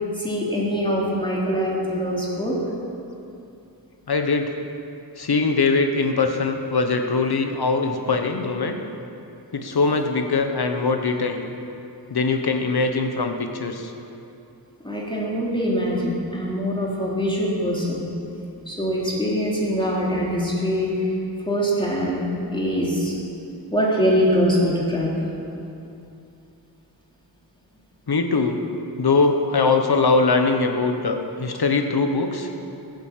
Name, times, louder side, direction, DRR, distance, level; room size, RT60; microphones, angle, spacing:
voice 1, 0.1-2.5 14.8-18.0 18.7-21.1 21.5-22.2 22.5-23.1 23.7-25.3, equal, 10° left, -5 dB, 3.2 m, -23 dB
voice 2, 4.1-4.6 5.2-8.8 9.5-11.4 12.1-13.9 28.1-28.6 29.0-32.5, left 4 dB, 70° left, 5 dB, 1.2 m, -22 dB
16.5 x 8.1 x 7.4 m, 2.7 s
wide cardioid pair, 75°, 40 cm